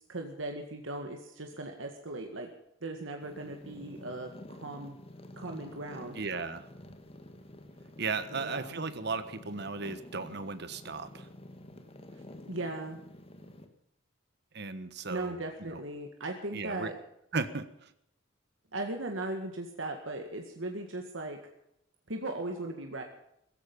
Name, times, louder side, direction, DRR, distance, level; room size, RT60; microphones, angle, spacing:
voice 1, 0.1-2.5 2.8-5.0 5.4-6.2 8.3-8.8 12.5-13.0 15.1-17.0 18.7-21.4 22.1-23.0, right 2 dB, 90° right, 3 dB, 1.9 m, -38 dB
sound 1, 3.2-13.7, left 1 dB, 30° left, 1.7 m, -50 dB
voice 2, 6.1-6.6 8.0-11.3 14.5-15.8 16.5-16.9 17.3-17.7, right 4 dB, 60° right, 12 dB, 1.4 m, -36 dB
16.5 x 15.5 x 5.5 m, 0.76 s
head